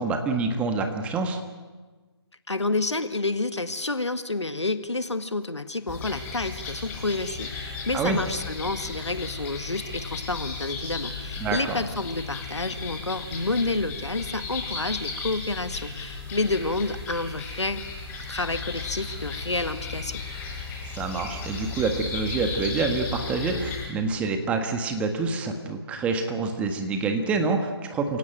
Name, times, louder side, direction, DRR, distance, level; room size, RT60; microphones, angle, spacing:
voice 1, 0.0-1.4 7.9-8.2 11.4-11.8 20.9-28.2, right 4 dB, 10° right, 6 dB, 1.6 m, -27 dB
voice 2, 2.5-17.8 18.3-20.2, left 2 dB, 90° left, 11 dB, 1.9 m, -29 dB
sound 1, 5.9-23.9, left 4 dB, 10° left, 4.9 m, -35 dB
28.5 x 17.5 x 9.2 m, 1.3 s
figure-of-eight pair, 155°, 14 cm